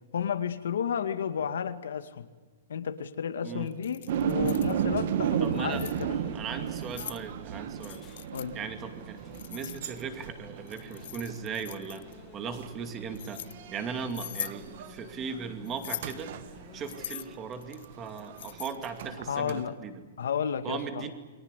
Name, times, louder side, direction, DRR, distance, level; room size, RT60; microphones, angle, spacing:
voice 1, 0.1-2.3 2.7-6.3 8.3-8.6 19.3-19.8 20.2-21.1, left 7 dB, 90° left, 10 dB, 2.1 m, -32 dB
Keys jangling, 3.7-4.7 5.5-6.0 6.7-7.2 7.8-8.5 9.3-10.2 10.7-12.1 12.8-13.5 14.1-14.6 15.7-16.2 16.8-19.0, left 12 dB, 55° left, 0.9 m, -41 dB
sound 1, 4.1-15.4 16.0-19.6, right 9 dB, 50° right, 1.6 m, -34 dB
voice 2, 5.4-5.8 6.3-8.0 8.5-12.0 12.3-13.4 13.7-16.3 16.7-20.0 20.6-21.1, right 6 dB, 20° right, 7 dB, 2.6 m, -38 dB
sound 2, 5.7-17.4, left 8 dB, 15° left, 1.8 m, -53 dB
29.0 x 23.5 x 8.4 m, 1.3 s
hypercardioid pair, 170°, 0 cm